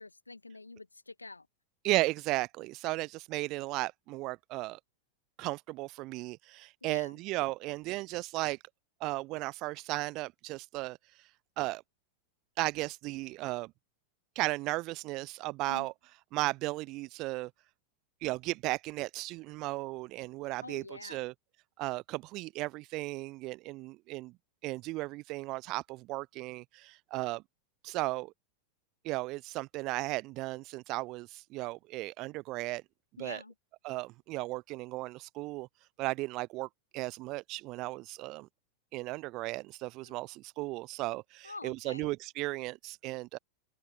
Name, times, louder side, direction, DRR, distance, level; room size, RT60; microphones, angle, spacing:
voice 1, 0.0-1.5 6.8-7.1 15.7-15.9 20.6-21.3 33.2-33.5 40.0-40.2 41.4-42.1, left 3 dB, 80° left, 1.9 m, -46 dB
voice 2, 1.8-4.8 5.4-8.6 9.0-11.3 11.6-11.8 12.6-13.7 14.4-15.9 16.3-17.5 18.2-21.3 21.8-24.3 24.6-27.4 27.8-28.3 29.0-32.8 33.2-33.4 33.8-35.7 36.0-38.5 38.9-43.4, right 21 dB, 40° right, 0.5 m, -35 dB
open air
figure-of-eight pair, 90°, 0 cm